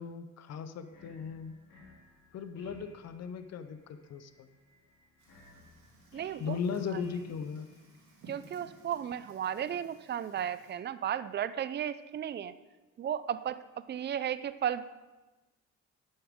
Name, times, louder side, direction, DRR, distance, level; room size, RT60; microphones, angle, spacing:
voice 1, 0.0-1.5 2.3-4.5 6.4-7.7, left 6 dB, 60° left, 11 dB, 0.7 m, -37 dB
sound 1, 0.8-8.9, left 3 dB, 85° left, 3.2 m, -60 dB
Fire, 5.2-10.7, right 3 dB, 80° right, 3.2 m, -58 dB
voice 2, 6.1-6.6 6.9-7.0 8.3-12.5 13.0-14.8, right 9 dB, 35° right, 14 dB, 0.4 m, -34 dB
11.0 x 7.2 x 3.6 m, 1.2 s
cardioid pair, 90°, 30 cm